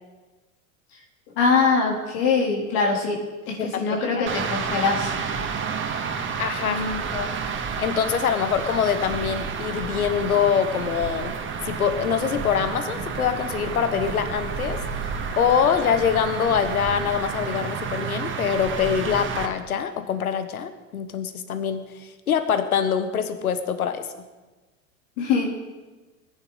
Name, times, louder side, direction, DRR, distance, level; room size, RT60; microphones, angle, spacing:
voice 1, 1.4-5.1 5.5-5.6 6.6-7.0 25.2-25.5, left 4 dB, 55° left, -1 dB, 3.2 m, -23 dB
voice 2, 3.6-4.3 6.4-7.3 7.8-11.3 11.6-24.1, left 7 dB, 80° left, 10 dB, 1.3 m, -24 dB
sound 1, 4.3-19.5, right 6 dB, 25° right, 2.0 m, -30 dB
21.0 x 10.5 x 3.9 m, 1.2 s
hypercardioid pair, 85°, 42 cm